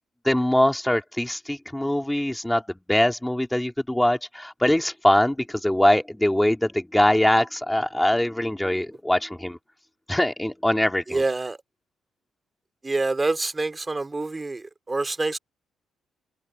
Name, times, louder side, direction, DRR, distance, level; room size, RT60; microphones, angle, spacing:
voice 1, 0.2-9.6 10.1-11.2, left 1 dB, 5° left, 3.1 m, -22 dB
voice 2, 11.1-11.6 12.8-15.4, right 3 dB, 20° right, 3.4 m, -26 dB
cardioid pair, 90°, 0 cm